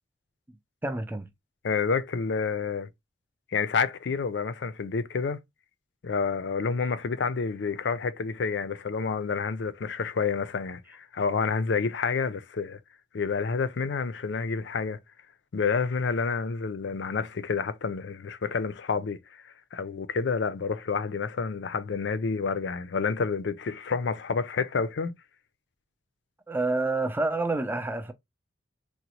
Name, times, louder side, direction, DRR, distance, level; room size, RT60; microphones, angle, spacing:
voice 1, 0.8-1.3 26.5-28.1, right 2 dB, 10° right, 0.4 m, -28 dB
voice 2, 1.6-2.9 3.5-5.4 6.0-12.8 13.1-15.0 15.5-25.1, left 5 dB, 65° left, 0.4 m, -29 dB
3.9 x 2.1 x 2.9 m
head